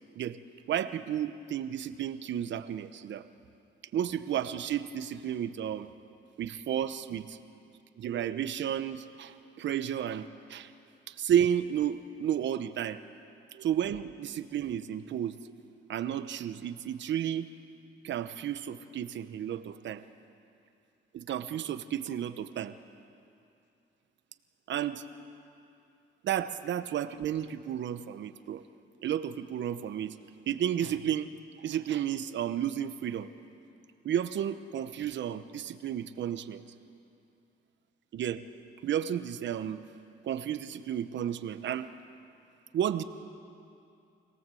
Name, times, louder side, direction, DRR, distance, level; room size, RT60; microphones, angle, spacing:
voice 1, 0.7-3.3 3.9-5.9 6.4-7.4 8.0-10.7 11.1-13.0 13.5-15.4 15.9-17.5 18.0-20.0 21.1-22.7 24.7-25.3 26.2-28.6 29.0-30.1 30.5-31.3 31.6-33.3 34.0-36.6 38.1-38.4 38.8-39.8 40.2-41.9 42.7-43.0, right 10 dB, 65° right, 11 dB, 1.0 m, -32 dB
26.0 x 18.0 x 7.8 m, 2.6 s
cardioid pair, 90°, 20 cm